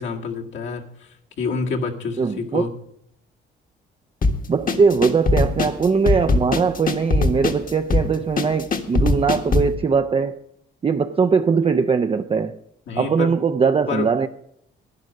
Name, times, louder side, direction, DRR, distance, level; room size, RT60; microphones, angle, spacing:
voice 1, 0.0-2.7 12.9-13.3 13.9-14.1, left 4 dB, 70° left, 2.0 m, -28 dB
voice 2, 2.2-2.7 4.5-10.4 10.8-12.6 13.0-14.3, right 5 dB, 30° right, 0.5 m, -20 dB
sound 1, 4.2-9.8, left 3 dB, 45° left, 1.4 m, -21 dB
11.0 x 11.0 x 6.3 m
cardioid pair, 90°, 20 cm